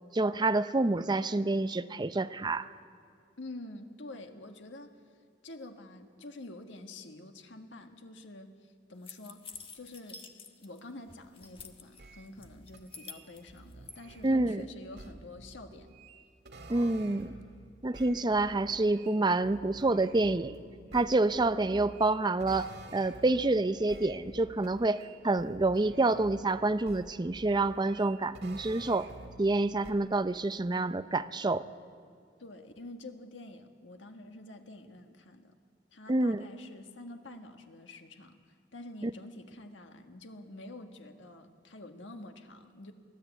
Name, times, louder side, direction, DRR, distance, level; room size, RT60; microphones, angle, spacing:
voice 1, 0.1-2.7 14.2-14.6 16.7-17.3 17.8-20.6 20.9-29.1 29.4-31.7 36.1-36.4 39.0-39.1, right 2 dB, 25° right, 12 dB, 0.6 m, -28 dB
voice 2, 3.4-5.0 5.4-10.2 10.6-16.0 21.3-21.9 32.4-35.5 35.9-38.4 38.7-42.9, left 2 dB, 90° left, 5 dB, 1.6 m, -48 dB
sound 1, 9.0-10.8 11.1-12.0 12.4-14.0, left 5 dB, 30° left, 1.4 m, -48 dB
sound 2, 11.9-17.6 17.9-23.6 23.9-26.6 26.9-29.6 29.8-29.9, right 2 dB, 65° right, 1.8 m, -50 dB
24.0 x 16.0 x 8.2 m, 2.2 s
head